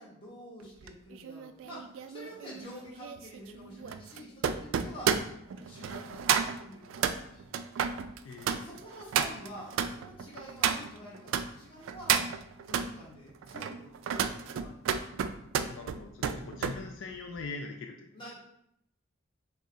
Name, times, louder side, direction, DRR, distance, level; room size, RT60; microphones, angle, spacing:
voice 1, 0.0-5.1 5.5-7.6 8.5-12.1 12.6-15.0 18.1-18.4, equal, 25° left, -5 dB, 1.2 m, -48 dB
sound 1, 0.8-11.5 11.8-12.9 13.4-16.8 17.1-17.4, right 7 dB, 80° right, 0.3 m, -32 dB
voice 2, 8.2-8.8 15.7-18.1, left 4 dB, 75° left, 3 dB, 0.4 m, -42 dB
5.2 x 2.3 x 3.8 m, 0.76 s
head